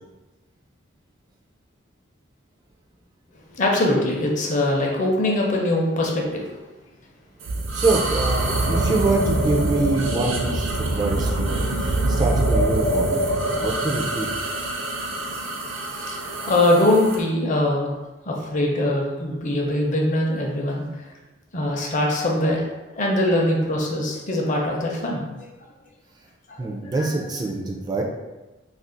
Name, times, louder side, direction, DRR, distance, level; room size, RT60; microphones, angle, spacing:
voice 1, 3.6-6.6 15.9-17.9 18.3-20.8 21.5-22.6 22.9-25.3 26.5-27.1, left 1 dB, 40° left, -1 dB, 0.6 m, -22 dB
sound 1, 7.4-17.2, right 1 dB, 75° right, 0.5 m, -24 dB
voice 2, 7.7-14.3 26.6-28.0, right 3 dB, 20° right, -1 dB, 0.3 m, -25 dB
2.4 x 2.3 x 3.8 m, 1.1 s
head